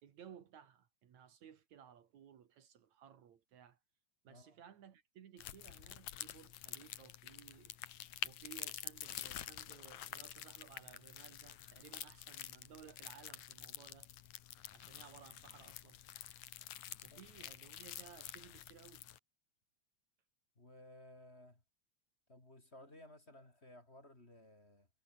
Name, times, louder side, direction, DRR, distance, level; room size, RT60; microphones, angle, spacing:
voice 1, 0.0-3.8 4.2-7.8 8.2-14.1 14.7-16.0 17.0-19.1, right 8 dB, 70° right, 3.0 m, -58 dB
voice 2, 4.3-4.6 16.9-17.5 20.6-21.6 22.3-24.9, left 1 dB, 20° left, 3.8 m, -58 dB
sound 1, 5.4-19.2, left 12 dB, 75° left, 2.6 m, -48 dB
omnidirectional pair, 3.5 m